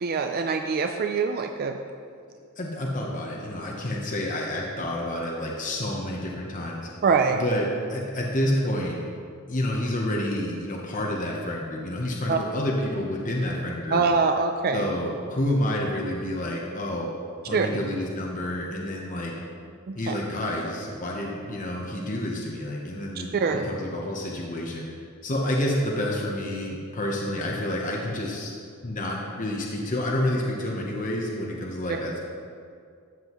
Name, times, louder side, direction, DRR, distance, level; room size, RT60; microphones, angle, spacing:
voice 1, 0.0-1.8 7.0-7.4 12.3-12.4 13.9-14.8 17.5-17.7 19.9-20.1 23.3-23.7, right 5 dB, 45° right, 5 dB, 0.4 m, -24 dB
voice 2, 2.6-6.8 7.3-9.0 9.5-14.1 14.7-17.1 17.5-19.3 19.9-24.9 25.2-28.5 28.8-32.2, left 1 dB, 35° left, -2 dB, 1.0 m, -29 dB
13.5 x 7.8 x 3.1 m, 2.3 s
head